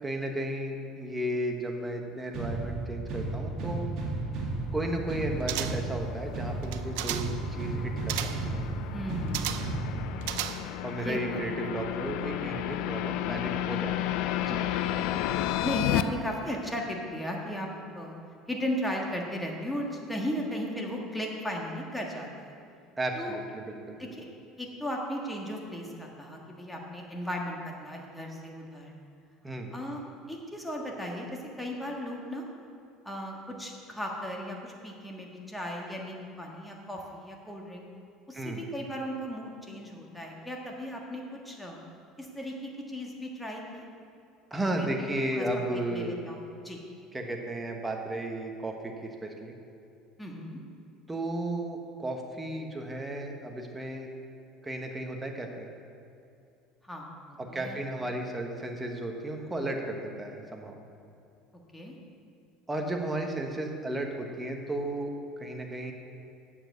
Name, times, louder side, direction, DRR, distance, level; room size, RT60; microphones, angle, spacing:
voice 1, 0.0-3.9 4.7-8.7 10.8-14.1 14.4-14.6 23.0-24.1 29.4-29.7 38.3-38.6 44.5-46.2 47.1-48.9 49.2-49.5 51.1-54.1 54.6-55.7 57.4-60.8 62.7-65.9, right 1 dB, 10° right, 2 dB, 1.1 m, -34 dB
sound 1, 2.3-10.3, right 2 dB, 50° right, 2.2 m, -34 dB
sound 2, 4.5-16.0, left 12 dB, 70° left, 0.4 m, -33 dB
sound 3, 5.5-6.0 6.6-7.4 8.1-8.5 9.3-9.8 10.2-10.9 11.2-11.3, right 12 dB, 85° right, 0.5 m, -34 dB
voice 2, 8.9-9.5 11.0-11.4 14.9-15.1 15.6-17.7 17.9-18.1 18.5-22.3 23.1-23.3 24.1-24.2 24.6-28.9 29.7-30.0 30.3-32.4 33.0-37.8 38.3-41.8 42.2-43.8 44.8-46.8 50.2-50.6 56.8-57.8 61.7-62.0, equal, 5° left, -1 dB, 1.5 m, -36 dB
8.8 x 7.1 x 6.6 m, 2.6 s
cardioid pair, 130°, 0 cm